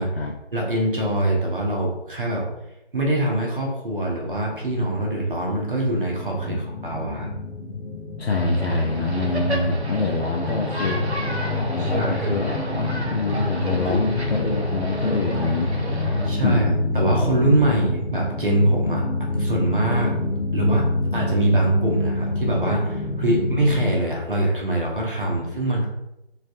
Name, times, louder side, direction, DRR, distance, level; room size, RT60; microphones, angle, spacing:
voice 1, 0.5-2.5 2.9-7.3 11.8-12.3 13.8-14.0 16.2-19.0 19.3-20.1 20.5-20.8 21.1-25.9, right 1 dB, 55° right, -2 dB, 0.7 m, -23 dB
sound 1, 4.6-23.9, left 2 dB, 5° left, 0.9 m, -27 dB
voice 2, 8.2-11.0 11.7-15.7 16.4-16.9 25.2-25.4, left 3 dB, 75° left, 2 dB, 0.5 m, -25 dB
sound 2, 8.3-16.3, right 1 dB, 90° right, 0.7 m, -32 dB
3.3 x 2.3 x 2.4 m, 0.88 s
figure-of-eight pair, 155°, 32 cm